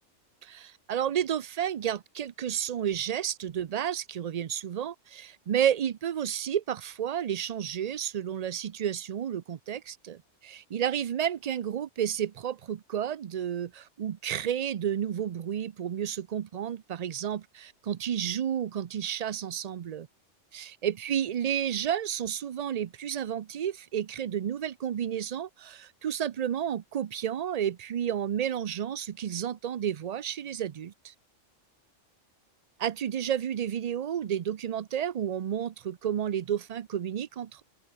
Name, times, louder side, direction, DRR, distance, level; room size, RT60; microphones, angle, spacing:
voice 1, 0.4-20.1 20.5-31.1 32.8-37.6, right 9 dB, 60° right, 0.4 m, -31 dB
open air
omnidirectional pair, 1.3 m